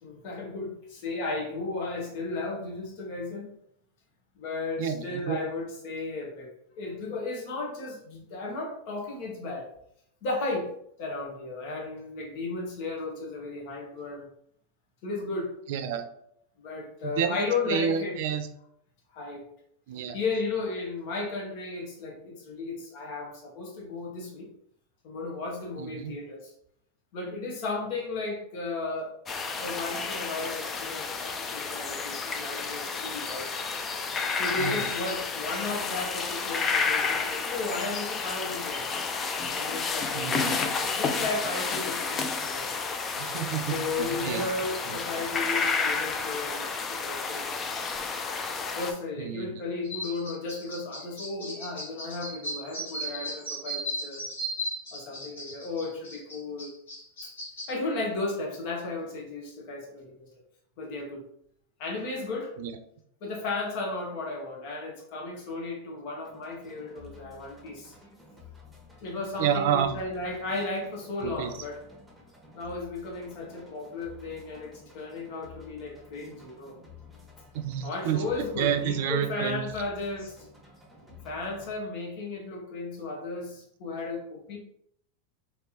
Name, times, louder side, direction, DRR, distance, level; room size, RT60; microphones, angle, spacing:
voice 1, 0.0-3.5 4.4-9.7 10.2-10.7 11.0-14.3 15.0-15.6 16.6-18.2 19.1-19.4 20.1-24.5 25.0-26.5 27.1-29.3 29.5-33.5 34.3-38.9 39.5-42.8 43.7-47.5 48.7-54.2 54.9-56.7 57.7-60.3 60.8-61.2 61.8-62.5 63.2-67.9 69.0-71.8 72.5-76.7 77.8-80.4 81.2-84.6, left 3 dB, 60° left, 0 dB, 1.2 m, -34 dB
voice 2, 4.8-5.4 15.7-16.0 17.0-17.4 17.7-18.5 19.9-20.2 25.8-26.1 34.6-34.9 40.1-40.8 43.2-44.5 44.9-45.2 49.2-49.6 62.6-62.8 69.4-70.0 71.2-71.5 77.5-78.2 78.6-79.7, right 8 dB, 65° right, 8 dB, 0.5 m, -30 dB
sound 1, 29.3-48.9, left 5 dB, 30° left, 0.5 m, -31 dB
sound 2, 49.8-57.7, equal, 80° left, 1.5 m, -37 dB
sound 3, 66.2-81.8, left 4 dB, ahead, 1.2 m, -52 dB
3.4 x 2.9 x 2.9 m, 0.71 s
hypercardioid pair, 95°, 0 cm